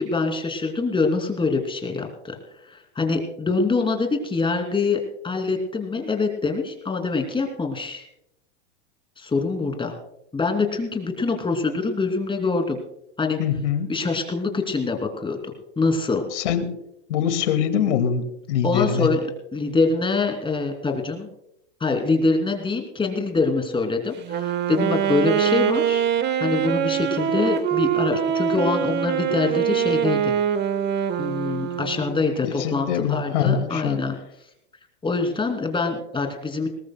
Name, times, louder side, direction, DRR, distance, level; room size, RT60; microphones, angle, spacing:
voice 1, 0.0-2.4 2.7-8.1 9.2-9.9 10.3-12.8 13.2-13.4 13.9-16.2 18.6-19.2 19.5-21.3 21.8-26.0 26.4-30.3 31.2-34.2 35.0-36.7, left 3 dB, 15° left, 5 dB, 2.7 m, -24 dB
voice 2, 13.4-13.9 16.3-16.7 17.1-19.1 32.4-34.0, left 8 dB, 70° left, 9 dB, 2.1 m, -23 dB
Wind instrument woodwind instrument, 24.2-32.3, right 9 dB, 30° right, 1.1 m, -24 dB
20.5 x 19.5 x 2.2 m, 0.82 s
hypercardioid pair, 110°, 36 cm